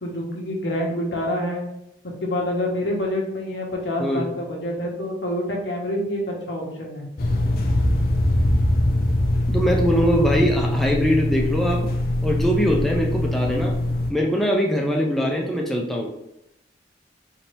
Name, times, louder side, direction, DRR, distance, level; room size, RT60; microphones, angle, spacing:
voice 1, 0.0-1.6 2.0-7.1, left 1 dB, 90° left, -1 dB, 1.1 m, -27 dB
voice 2, 4.0-4.3 9.5-11.9 12.2-13.7 14.1-16.1, equal, ahead, -1 dB, 0.5 m, -22 dB
sound 1, 7.2-14.1, left 1 dB, 55° left, 0.6 m, -22 dB
4.3 x 2.8 x 3.3 m, 0.84 s
head